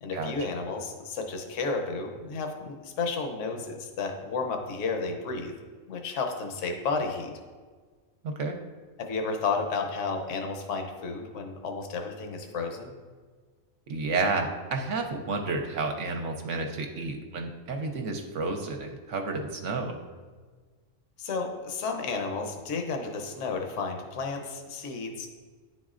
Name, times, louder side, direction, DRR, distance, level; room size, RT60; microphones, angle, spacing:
voice 1, 0.0-5.5 5.9-7.3 9.0-12.9 21.2-25.3, left 4 dB, 70° left, 4 dB, 1.1 m, -32 dB
voice 2, 8.2-8.6 13.9-20.0, right 3 dB, 70° right, 3 dB, 0.9 m, -31 dB
10.0 x 4.1 x 2.4 m, 1.5 s
omnidirectional pair, 1.4 m